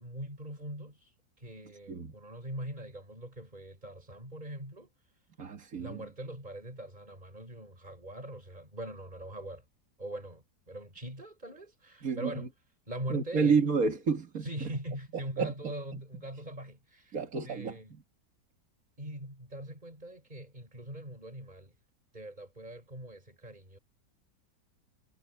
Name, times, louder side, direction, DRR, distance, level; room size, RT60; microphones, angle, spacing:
voice 1, 0.0-4.9 5.7-9.6 10.0-12.5 12.9-13.6 14.4-17.2 17.4-17.9 19.0-21.7 22.1-23.8, right 1 dB, 25° right, 7.9 m, -42 dB
voice 2, 5.4-6.0 12.0-12.3 13.1-14.4 15.4-15.5 17.1-17.8, right 5 dB, 50° right, 2.3 m, -29 dB
omnidirectional pair, 1.9 m